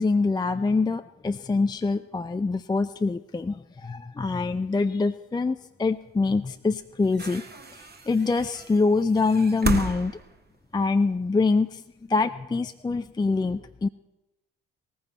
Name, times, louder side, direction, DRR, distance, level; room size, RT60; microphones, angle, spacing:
voice 1, 0.0-7.4 8.1-10.1 10.7-11.8 12.1-13.9, left 3 dB, 10° left, 9 dB, 0.5 m, -24 dB
sound 1, 6.2-6.3 6.9-11.3 12.2-12.3, right 4 dB, 30° right, 1.6 m, -34 dB
17.5 x 15.0 x 4.1 m, 0.97 s
hypercardioid pair, 55°, 34 cm